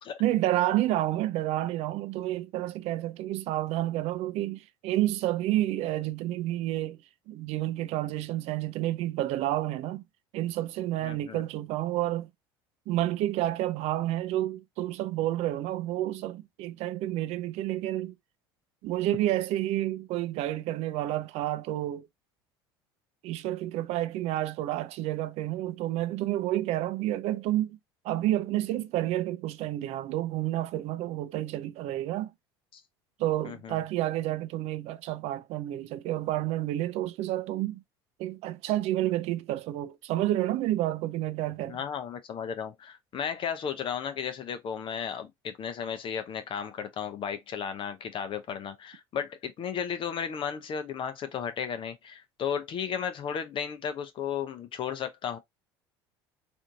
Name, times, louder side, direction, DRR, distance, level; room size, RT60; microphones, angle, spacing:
voice 1, 0.2-7.0 7.3-10.0 10.3-12.3 12.9-18.2 18.8-22.1 23.2-27.8 28.0-32.3 33.2-37.8 38.2-41.8, right 14 dB, 60° right, 0.5 m, -30 dB
voice 2, 11.0-11.4 32.7-32.8 33.4-33.8 41.7-55.4, left 7 dB, 45° left, 0.6 m, -34 dB
3.4 x 2.6 x 2.6 m
hypercardioid pair, 75°, 12 cm